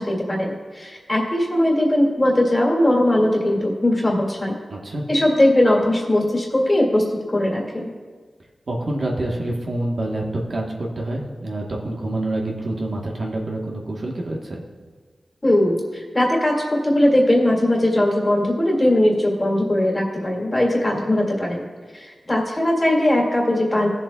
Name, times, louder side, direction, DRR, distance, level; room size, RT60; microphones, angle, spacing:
voice 1, 0.0-4.6 5.1-7.9 15.4-21.6 21.9-23.9, left 1 dB, 25° left, -2 dB, 2.2 m, -19 dB
voice 2, 4.7-5.0 8.7-14.6, right 1 dB, 60° right, -1 dB, 1.2 m, -27 dB
17.5 x 7.3 x 2.3 m, 1.5 s
wide cardioid pair, 90°, 0 cm